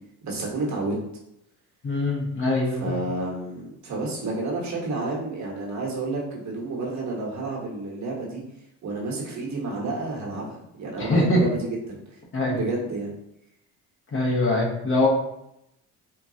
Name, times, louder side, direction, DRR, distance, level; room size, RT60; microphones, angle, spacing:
voice 1, 0.2-0.9 2.8-8.4 8.8-12.0 12.5-13.1, right 2 dB, 45° right, -3 dB, 1.1 m, -30 dB
voice 2, 1.8-3.0 11.0-11.4 12.3-12.5 14.1-15.1, left 2 dB, 30° left, -3 dB, 1.0 m, -23 dB
3.8 x 2.2 x 2.7 m, 0.82 s
supercardioid pair, 90°, 39 cm